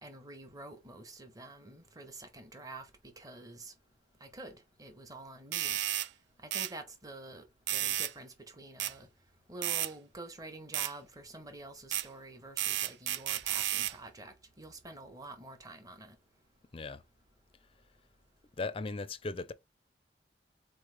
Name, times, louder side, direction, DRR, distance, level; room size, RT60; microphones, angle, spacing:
voice 1, 0.0-3.7 4.2-5.8 6.4-7.4 7.7-9.1 9.5-16.2, right 2 dB, 20° right, 0.9 m, -48 dB
sound 1, 5.5-6.1 6.5-6.7 7.7-8.1 8.8-8.9 9.6-9.9 10.7-10.9 11.9-12.1 12.6-13.9, right 13 dB, 75° right, 0.4 m, -32 dB
voice 2, 18.6-19.5, left 3 dB, 30° left, 0.4 m, -37 dB
4.0 x 3.2 x 3.3 m
head